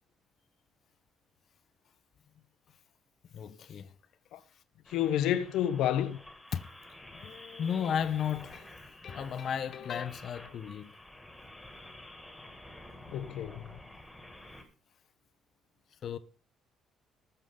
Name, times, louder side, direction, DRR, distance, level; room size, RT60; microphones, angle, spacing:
voice 1, 3.3-3.9 6.5-6.6 7.1-10.9 16.0-16.2, left 8 dB, 40° left, 0.8 m, -34 dB
sound 1, 4.8-14.6, left 1 dB, 5° left, 1.9 m, -50 dB
voice 2, 4.9-6.2 13.1-13.7, left 10 dB, 75° left, 0.8 m, -29 dB
20.0 x 7.0 x 3.8 m
cardioid pair, 170°, 0 cm